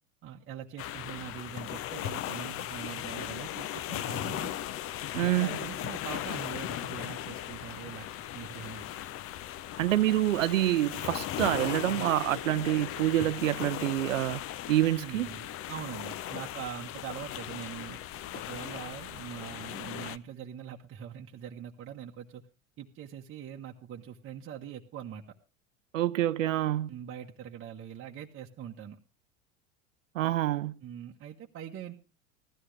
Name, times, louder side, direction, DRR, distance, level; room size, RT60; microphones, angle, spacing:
voice 1, 0.2-4.5 5.1-8.1 8.3-8.9 14.9-18.0 18.3-22.4 22.8-25.4 26.9-29.0 30.8-32.0, right 9 dB, 30° right, 1.1 m, -43 dB
sound 1, 0.8-20.2, left 12 dB, 35° left, 0.7 m, -38 dB
voice 2, 5.1-5.5 9.8-14.4 14.7-15.3 25.9-26.9 30.1-30.8, right 14 dB, 75° right, 0.7 m, -27 dB
16.0 x 13.0 x 3.3 m
hypercardioid pair, 80°, 40 cm